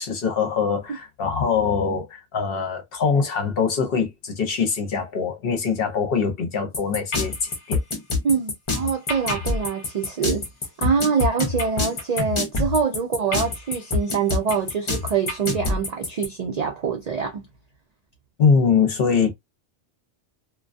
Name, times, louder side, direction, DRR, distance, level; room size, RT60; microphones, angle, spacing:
voice 1, 0.0-7.8 18.4-19.3, left 6 dB, 55° left, 0.8 m, -23 dB
sound 1, 6.7-16.3, left 3 dB, 35° left, 0.5 m, -25 dB
voice 2, 8.2-10.5 10.8-17.5, right 6 dB, 85° right, 0.3 m, -25 dB
2.2 x 2.2 x 2.4 m
omnidirectional pair, 1.2 m